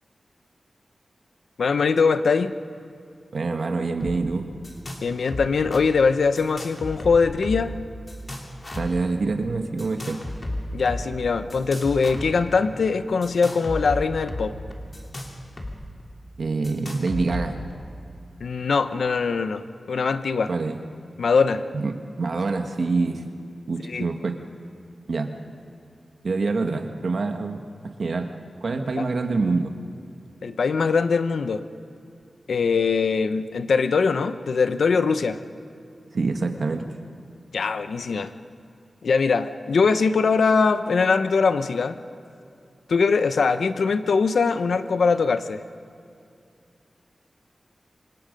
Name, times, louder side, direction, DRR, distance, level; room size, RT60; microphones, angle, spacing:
voice 1, 1.6-2.5 5.0-7.7 10.7-14.5 18.4-19.6 19.9-20.5 21.2-21.6 23.9-24.1 29.0-29.1 30.4-31.6 32.5-35.4 37.5-38.3 39.0-42.0 42.9-45.6, left 5 dB, 85° left, 10 dB, 0.8 m, -22 dB
voice 2, 3.3-4.5 8.7-10.2 16.4-17.6 20.5-20.8 21.7-21.9 22.2-23.2 23.7-24.4 25.1-25.3 26.2-27.6 28.0-28.3 28.6-29.7 36.1-36.9, right 3 dB, 65° right, 5 dB, 1.4 m, -25 dB
sound 1, 4.0-4.2 4.4-5.0 5.3-5.8 6.4-7.8 8.1-9.0 9.8-11.0 11.5-12.6 13.2-15.7 16.0-16.1 16.6-17.7, left 1 dB, 35° left, 3.0 m, -33 dB
27.0 x 25.5 x 5.3 m, 2.5 s
wide cardioid pair, 95°, 0 cm